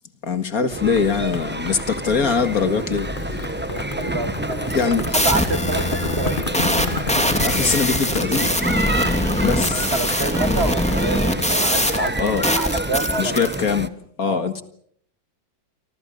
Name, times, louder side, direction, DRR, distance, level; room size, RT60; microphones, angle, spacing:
voice 1, 0.2-3.1 4.7-5.0 7.4-8.7 9.4-9.9 12.2-12.4 13.2-13.9 14.2-14.6, left 6 dB, 50° left, 2.2 m, -22 dB
sound 1, 0.7-13.9, right 1 dB, 10° right, 0.5 m, -28 dB
sound 2, 0.8-12.5, left 4 dB, 30° left, 1.3 m, -32 dB
voice 2, 3.3-4.8 5.2-6.4 9.7-12.2 12.5-13.5 14.2-14.6, right 3 dB, 35° right, 1.6 m, -28 dB
sound 3, 4.6-13.6, equal, 5° left, 2.5 m, -22 dB
29.5 x 24.5 x 5.4 m
omnidirectional pair, 2.1 m